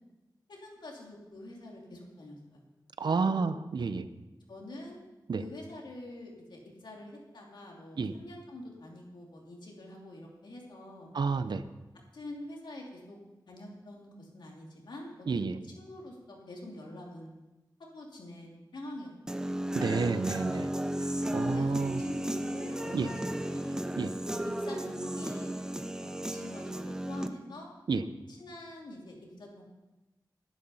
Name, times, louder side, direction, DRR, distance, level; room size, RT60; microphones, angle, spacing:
voice 1, 0.5-2.6 3.0-3.5 4.5-5.0 5.4-11.1 12.1-13.2 13.5-17.3 17.8-19.4 21.4-23.8 24.3-25.5 26.0-27.7 28.3-29.6, left 1 dB, 80° left, -1 dB, 2.8 m, -46 dB
voice 2, 3.0-4.1 5.3-5.4 8.0-8.1 11.1-11.6 15.3-15.6 19.7-20.7 21.0-22.0 22.9-23.1 24.0-24.1 27.9-28.0, right 4 dB, 75° right, 12 dB, 0.7 m, -30 dB
Human voice / Guitar, 19.3-27.3, right 1 dB, 10° right, 0.7 m, -34 dB
12.0 x 11.0 x 5.6 m, 1.1 s
wide cardioid pair, 110°, 8 cm